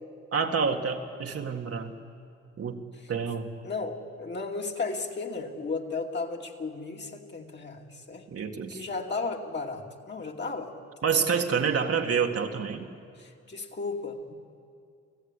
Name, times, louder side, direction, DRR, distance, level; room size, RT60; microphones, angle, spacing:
voice 1, 0.3-1.9 2.6-3.5 8.3-8.8 11.0-12.9, right 6 dB, 50° right, 3 dB, 2.0 m, -28 dB
voice 2, 3.6-8.2 8.7-10.7 13.2-14.3, left 3 dB, 35° left, 1 dB, 2.7 m, -34 dB
29.5 x 15.0 x 9.9 m, 2.4 s
cardioid pair, 90°, 30 cm